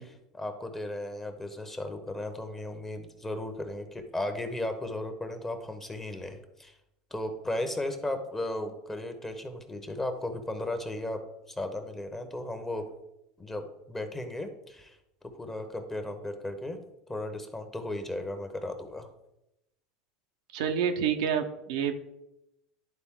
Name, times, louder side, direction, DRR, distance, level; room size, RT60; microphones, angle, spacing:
voice 1, 0.0-6.7 7.1-11.2 11.5-12.8 13.4-15.0 15.3-16.8 17.1-19.1, left 1 dB, 10° left, 6 dB, 1.1 m, -35 dB
voice 2, 20.5-21.9, right 8 dB, 80° right, 5 dB, 0.8 m, -28 dB
10.5 x 3.9 x 3.8 m, 0.85 s
supercardioid pair, 110°, 3 cm